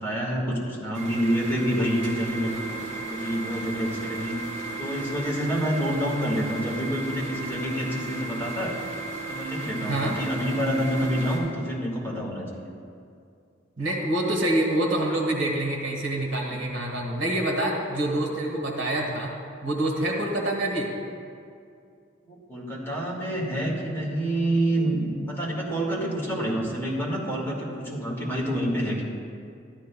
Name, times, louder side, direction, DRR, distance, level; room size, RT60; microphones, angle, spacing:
voice 1, 0.0-4.3 4.8-8.7 9.3-12.7 16.5-16.6 22.3-29.0, equal, 15° left, -4 dB, 1.7 m, -28 dB
sound 1, 0.9-11.4, right 3 dB, 40° right, 2.5 m, -35 dB
voice 2, 9.8-10.2 13.8-19.3 19.6-20.9, right 1 dB, 75° right, 0 dB, 1.6 m, -26 dB
13.5 x 11.5 x 2.3 m, 2.3 s
head